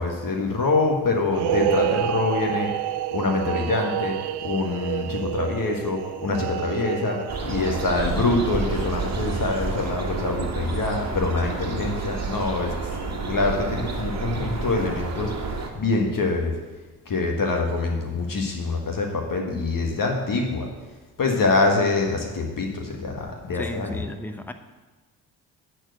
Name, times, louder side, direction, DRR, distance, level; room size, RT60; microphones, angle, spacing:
voice 1, 0.0-2.7 3.1-4.2 4.4-12.7 13.0-15.3 15.7-16.5 17.0-20.7 21.2-24.0, left 3 dB, 40° left, 2 dB, 1.6 m, -25 dB
sound 1, 1.3-9.9, right 12 dB, 55° right, 0.7 m, -29 dB
sound 2, 7.3-15.7, right 4 dB, 30° right, 1.8 m, -30 dB
voice 2, 23.5-24.5, left 1 dB, 5° left, 8 dB, 0.8 m, -34 dB
10.5 x 4.5 x 7.9 m, 1.2 s
hypercardioid pair, 45°, 49 cm